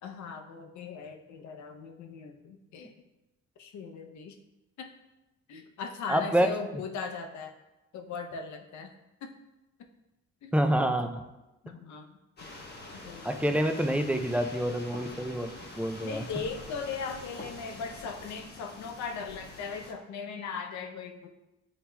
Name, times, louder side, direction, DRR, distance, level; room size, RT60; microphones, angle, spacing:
voice 1, 0.0-2.9 3.6-4.4 4.8-4.9 5.5-7.5 7.9-8.9 9.2-9.3 10.4-10.5 11.6-12.2 13.1-13.5 16.0-21.3, left 5 dB, 70° left, 5 dB, 0.7 m, -39 dB
voice 2, 6.1-6.5 10.5-11.2 13.2-15.5 15.8-16.2, right 1 dB, 5° right, 6 dB, 0.3 m, -27 dB
sound 1, 12.4-19.9, left 2 dB, 35° left, 1.0 m, -46 dB
8.4 x 2.8 x 2.2 m, 1.0 s
cardioid pair, 90°, 30 cm